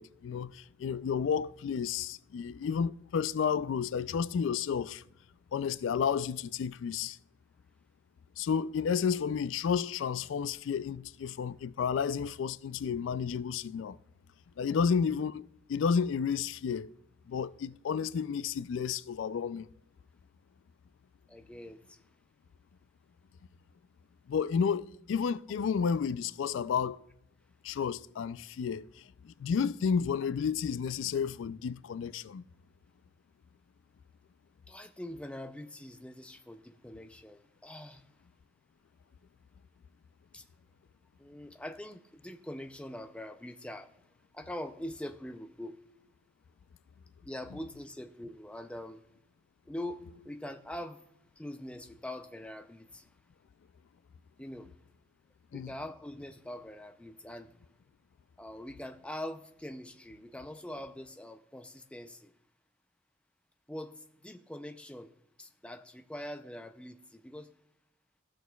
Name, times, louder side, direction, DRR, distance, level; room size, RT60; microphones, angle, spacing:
voice 1, 0.0-5.0 5.5-7.2 8.4-14.0 14.6-16.9 17.3-19.7 24.3-27.0 27.6-32.4 55.5-55.7, left 6 dB, 85° left, 0.3 m, -31 dB
voice 2, 21.3-22.0 34.7-38.1 40.3-40.4 41.2-43.9 44.3-45.8 47.2-49.0 49.7-51.0 51.4-53.1 54.4-54.7 55.5-57.5 58.4-62.3 63.7-65.1 65.4-67.5, left 1 dB, 5° left, 0.4 m, -43 dB
17.5 x 6.3 x 2.3 m
head